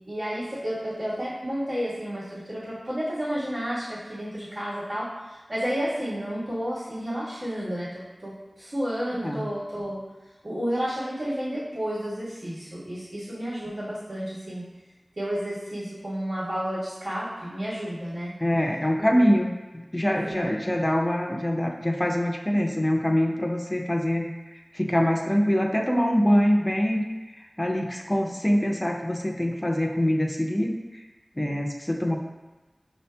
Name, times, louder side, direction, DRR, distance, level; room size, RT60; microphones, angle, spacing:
voice 1, 0.0-10.0 10.4-14.6 15.2-18.3 19.0-19.3 20.3-20.5, equal, 70° right, -11 dB, 1.4 m, -31 dB
voice 2, 18.4-24.3 24.7-27.0 27.3-31.0 31.4-32.2, equal, 20° left, 2 dB, 0.5 m, -24 dB
6.1 x 2.7 x 2.2 m, 1.1 s
wide cardioid pair, 55°, 0 cm